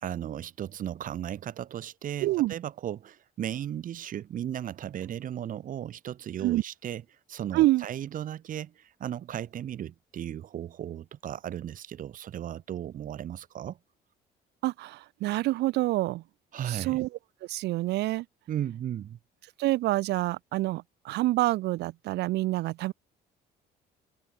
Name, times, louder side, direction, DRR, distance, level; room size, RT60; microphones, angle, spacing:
voice 1, 0.0-7.0 7.3-13.8 16.5-17.0 18.5-19.2, right 10 dB, 55° right, 1.8 m, -36 dB
voice 2, 2.2-2.5 6.4-6.6 7.5-7.9 14.6-16.2 16.7-17.1 17.5-18.2 19.6-22.9, right 17 dB, 80° right, 1.9 m, -27 dB
cardioid pair, 110°, 17 cm